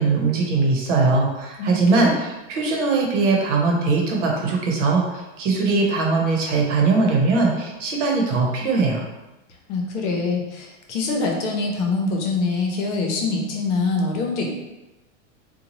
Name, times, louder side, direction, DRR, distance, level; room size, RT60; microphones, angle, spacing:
voice 1, 0.0-9.0, right 3 dB, 70° right, -1 dB, 0.9 m, -20 dB
voice 2, 1.6-2.1 9.7-14.5, left 3 dB, 65° left, 0 dB, 0.8 m, -24 dB
2.7 x 2.3 x 2.9 m, 1.0 s
supercardioid pair, 130°, 38 cm